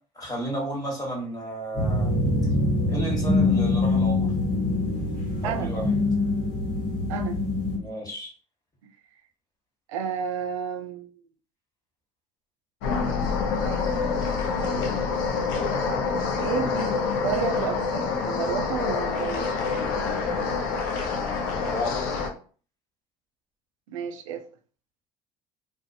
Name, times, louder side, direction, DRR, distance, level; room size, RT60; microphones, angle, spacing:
voice 1, 0.1-2.1 2.9-4.3 5.4-5.8 7.6-8.3 21.5-22.1, equal, 20° left, 1.4 m, -33 dB
sound 1, 1.8-7.8, left 2 dB, 55° left, 1.1 m, -24 dB
voice 2, 7.1-7.4 8.8-8.9 9.9-11.1 13.6-14.0 14.6-14.9 16.4-19.5 23.9-24.4, right 7 dB, 90° right, 0.4 m, -31 dB
sound 2, 12.8-22.3, left 5 dB, 75° left, 0.6 m, -27 dB
2.5 x 2.2 x 2.6 m
hypercardioid pair, 75°, 16 cm